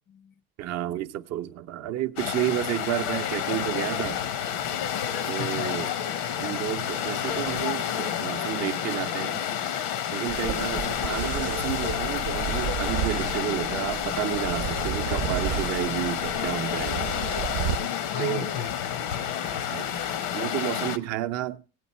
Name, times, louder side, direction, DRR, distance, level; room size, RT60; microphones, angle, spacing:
voice 1, 0.6-4.2 5.3-5.9 6.4-9.4 10.1-17.1 18.2-18.5 19.5-19.9 20.3-21.6, right 13 dB, 50° right, 0.6 m, -31 dB
sound 1, 2.2-21.0, left 9 dB, 85° left, 1.0 m, -29 dB
voice 2, 5.4-5.7 17.8-19.6, left 9 dB, 35° left, 0.5 m, -38 dB
sound 2, 10.3-17.8, right 10 dB, 80° right, 0.7 m, -33 dB
17.0 x 8.6 x 4.2 m
cardioid pair, 160°, 34 cm